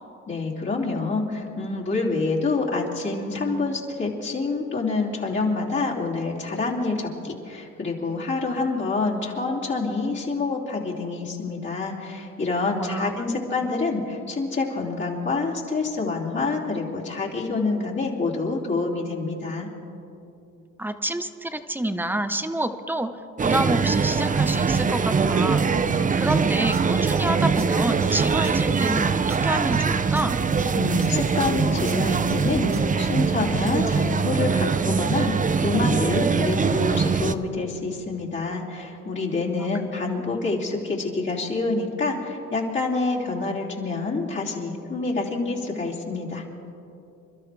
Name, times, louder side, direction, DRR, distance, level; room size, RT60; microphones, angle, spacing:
voice 1, 0.3-19.7 30.8-35.3 35.6-46.4, left 3 dB, 40° left, -6 dB, 2.8 m, -27 dB
voice 2, 12.8-13.4 20.8-23.1 23.4-25.7 26.2-30.3 39.6-39.7, right 1 dB, 5° right, 9 dB, 0.9 m, -28 dB
sound 1, 23.4-37.3, right 5 dB, 25° right, 0.6 m, -22 dB
sound 2, 26.3-32.9, right 2 dB, 45° right, 2.1 m, -39 dB
28.0 x 12.5 x 3.4 m, 2.8 s
cardioid pair, 90°, 30 cm